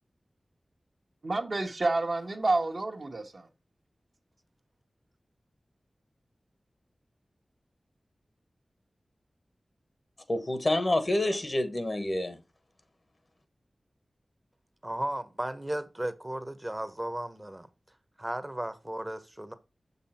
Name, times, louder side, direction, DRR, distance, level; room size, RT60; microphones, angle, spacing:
voice 1, 1.2-3.5, right 2 dB, 60° right, 1.3 m, -29 dB
voice 2, 10.3-12.4, left 1 dB, 40° left, 1.1 m, -28 dB
voice 3, 14.8-17.7 18.2-19.5, right 1 dB, 20° right, 1.0 m, -35 dB
6.7 x 5.5 x 4.3 m
wide cardioid pair, 55°, 0 cm